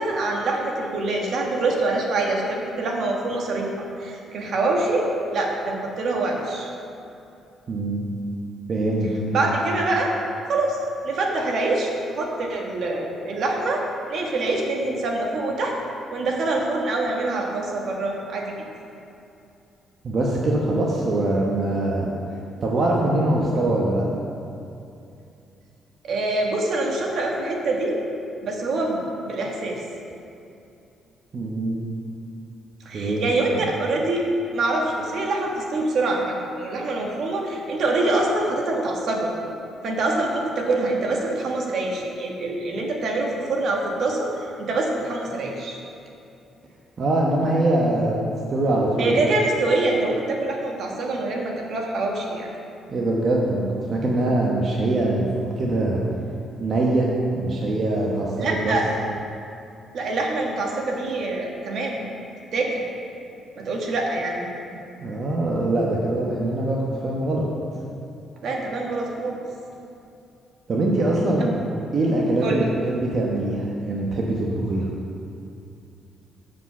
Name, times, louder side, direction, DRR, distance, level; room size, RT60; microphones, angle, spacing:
voice 1, 0.0-3.7 4.0-5.1 5.3-6.7 9.3-10.1 10.5-10.8 11.0-13.8 14.1-15.8 16.1-18.5 26.0-28.0 28.4-29.0 29.2-29.8 32.8-34.2 34.5-39.3 39.8-45.8 49.0-52.5 58.4-58.8 59.9-62.0 62.5-62.8 63.5-64.4 68.4-69.4 72.4-72.7, right 2 dB, 65° right, 0 dB, 1.4 m, -25 dB
voice 2, 7.7-8.1 8.7-9.5 20.0-22.1 22.6-24.0 31.3-31.9 32.9-33.3 47.0-48.2 48.5-49.2 52.9-55.3 55.6-56.0 56.6-57.1 57.3-58.8 65.0-67.5 70.7-71.6 71.9-74.9, right 2 dB, 45° right, -3 dB, 1.1 m, -23 dB
7.9 x 5.2 x 6.8 m, 2.7 s
cardioid pair, 90°, 0 cm